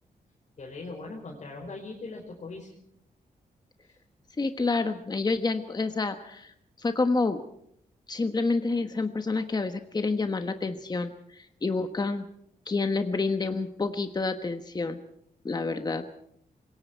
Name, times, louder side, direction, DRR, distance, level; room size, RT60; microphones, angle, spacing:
voice 1, 0.6-2.7, left 3 dB, 50° left, -1 dB, 4.7 m, -40 dB
voice 2, 4.4-7.4 8.1-12.2 12.7-15.0 15.4-16.0, left 3 dB, 25° left, 7 dB, 1.2 m, -28 dB
26.0 x 22.0 x 4.6 m, 0.72 s
wide cardioid pair, 130°, 16 cm